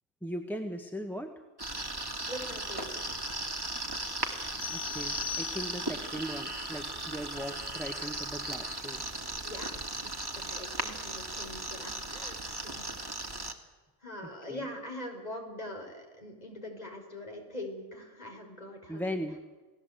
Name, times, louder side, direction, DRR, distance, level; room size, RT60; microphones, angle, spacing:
voice 1, 0.2-1.3 4.7-9.0 14.5-14.6 18.9-19.4, equal, ahead, 5 dB, 1.5 m, -38 dB
sound 1, 1.6-13.5, right 1 dB, 20° right, 2.3 m, -37 dB
voice 2, 2.3-3.1 9.4-12.9 14.0-19.2, left 1 dB, 30° left, 2 dB, 5.3 m, -43 dB
sound 2, 4.6-6.1, left 10 dB, 90° left, 2.7 m, -40 dB
29.0 x 19.0 x 8.1 m, 1.2 s
omnidirectional pair, 1.3 m